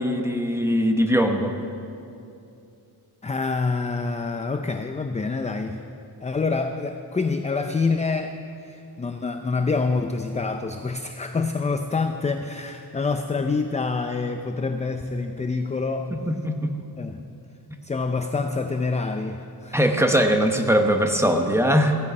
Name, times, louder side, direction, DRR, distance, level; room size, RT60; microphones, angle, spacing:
voice 1, 0.0-1.5 16.1-16.7 19.7-22.0, equal, 5° right, 4 dB, 1.0 m, -21 dB
voice 2, 3.2-5.8 6.2-16.2 17.0-17.3 17.8-19.8, left 4 dB, 20° left, 6 dB, 0.5 m, -27 dB
15.0 x 14.0 x 5.4 m, 2.6 s
wide cardioid pair, 150°, 40 cm